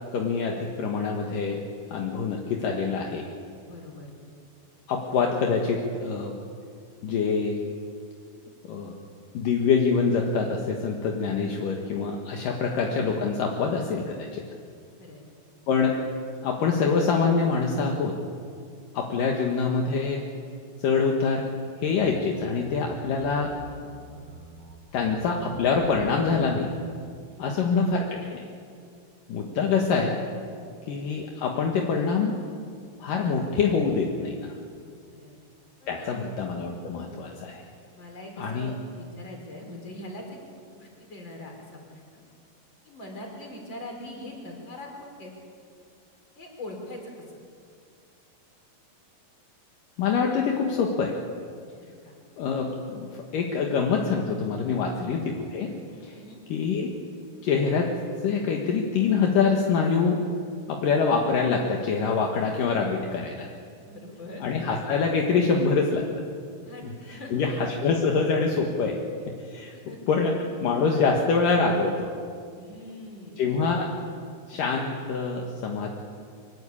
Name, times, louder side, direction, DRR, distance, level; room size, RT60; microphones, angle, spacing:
voice 1, 0.1-1.6 1.9-3.3 4.9-6.4 7.0-7.6 8.7-9.0 9.3-14.4 15.7-16.0 16.4-18.2 18.9-20.2 20.8-21.5 21.8-23.5 24.9-26.7 27.4-28.5 29.3-30.2 30.9-32.4 33.0-34.5 35.9-37.6 38.4-38.7 50.0-51.2 52.4-55.7 56.0-56.2 56.5-56.9 57.4-57.9 58.2-60.2 60.7-63.5 64.4-66.0 66.8-69.0 69.3-69.7 70.1-72.1 73.4-73.9 74.5-75.9, left 5 dB, 65° left, 1 dB, 3.1 m, -25 dB
voice 2, 3.6-4.1 15.0-15.2 27.3-27.8 28.8-28.9 30.5-30.8 35.1-35.3 35.8-36.3 37.9-40.2 40.7-41.5 41.9-42.2 42.8-45.3 46.4-47.1 52.0-52.1 54.7-55.0 56.1-56.4 63.8-64.4 66.6-66.8 67.1-67.7 69.7-70.0 72.5-73.4, left 1 dB, 30° left, 1 dB, 5.3 m, -42 dB
sound 1, 21.8-26.9, right 1 dB, 50° right, 5.3 m, -46 dB
24.5 x 21.0 x 8.6 m, 2.2 s
omnidirectional pair, 4.2 m